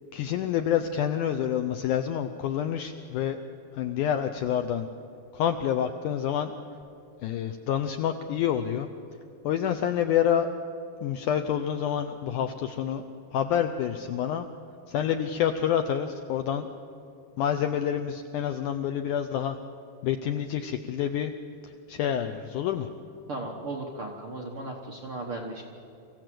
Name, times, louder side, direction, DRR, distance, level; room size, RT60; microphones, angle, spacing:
voice 1, 0.1-3.4 3.7-4.9 5.3-6.5 7.2-8.9 9.4-10.5 11.0-13.0 13.3-14.5 14.9-16.7 17.4-19.6 20.0-21.3 21.6-22.9, left 9 dB, 80° left, 7 dB, 1.8 m, -28 dB
voice 2, 23.3-25.6, right 2 dB, 60° right, 0 dB, 1.5 m, -36 dB
24.5 x 15.0 x 7.7 m, 2.6 s
omnidirectional pair, 4.4 m